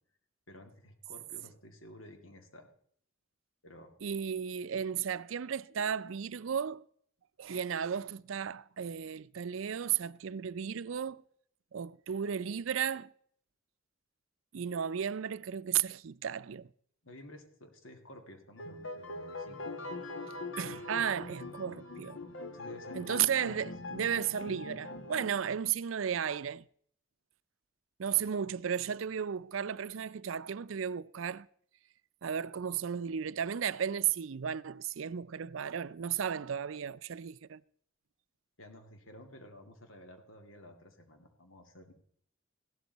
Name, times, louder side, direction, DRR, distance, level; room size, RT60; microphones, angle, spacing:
voice 1, 0.5-2.7 3.6-3.9 17.0-19.7 22.5-23.7 28.1-28.3 38.6-41.9, left 1 dB, 85° left, 2.5 m, -52 dB
voice 2, 4.0-6.8 7.4-11.2 11.7-13.1 14.5-16.7 20.6-22.2 22.9-26.7 28.0-31.5 32.2-37.6, right 8 dB, 80° right, 0.5 m, -34 dB
sound 1, 18.6-25.3, left 2 dB, 70° left, 1.5 m, -42 dB
16.0 x 12.5 x 4.1 m
head